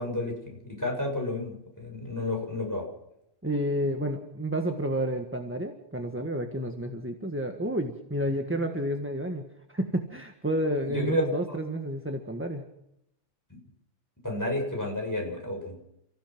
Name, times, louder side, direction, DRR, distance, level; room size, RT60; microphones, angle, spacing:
voice 1, 0.0-2.9 10.6-11.2 13.5-13.6 14.2-15.8, left 1 dB, 15° left, 0 dB, 7.0 m, -31 dB
voice 2, 3.4-9.5 9.7-12.6, right 1 dB, 10° right, 5 dB, 1.6 m, -30 dB
30.0 x 16.0 x 6.1 m, 0.82 s
omnidirectional pair, 1.3 m